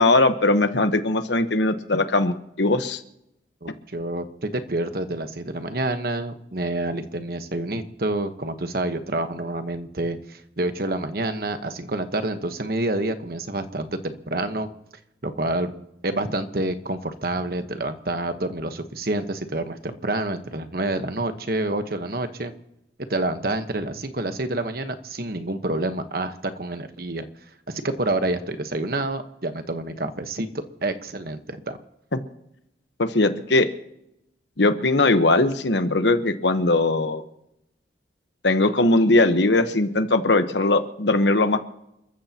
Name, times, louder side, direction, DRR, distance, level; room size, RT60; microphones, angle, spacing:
voice 1, 0.0-3.0 33.0-33.7 34.6-37.2 38.4-41.6, left 2 dB, 80° left, 9 dB, 1.2 m, -20 dB
voice 2, 3.6-14.7 15.2-15.7 16.0-22.5 23.1-27.3 27.7-31.8, right 2 dB, 55° right, 8 dB, 1.2 m, -28 dB
29.5 x 14.0 x 2.9 m, 0.83 s
head